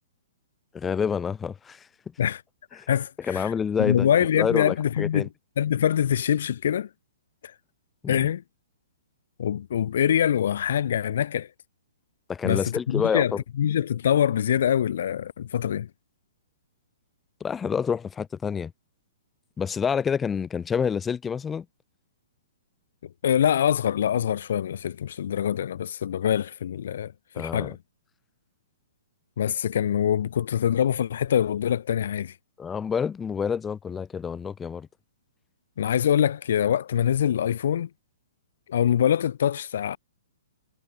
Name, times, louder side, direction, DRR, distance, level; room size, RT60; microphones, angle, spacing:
voice 1, 0.7-1.9 2.8-2.9 3.3-5.3 8.0-8.3 12.3-13.4 17.4-18.7 19.6-21.7 27.3-27.8 32.6-34.9, left 6 dB, 15° left, 2.5 m, -28 dB
voice 2, 2.7-3.5 3.8-5.3 5.6-6.9 8.1-8.4 9.4-11.5 12.4-15.9 23.2-27.8 29.4-32.3 35.8-37.9 38.7-40.0, left 9 dB, 60° left, 1.9 m, -24 dB
hypercardioid pair, 125°, 0 cm